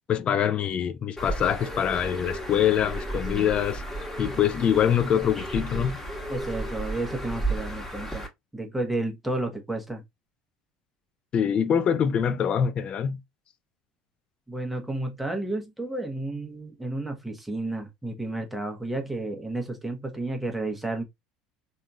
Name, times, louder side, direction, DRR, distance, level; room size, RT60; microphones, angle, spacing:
voice 1, 0.1-3.8 4.2-6.0 11.3-13.2, left 8 dB, 40° left, 0.5 m, -24 dB
Bird, 1.2-8.3, right 1 dB, 10° left, 1.5 m, -33 dB
voice 2, 6.3-8.3 8.5-10.0 14.5-21.0, right 2 dB, 5° right, 1.1 m, -31 dB
3.5 x 2.6 x 2.3 m
hypercardioid pair, 70°, 3 cm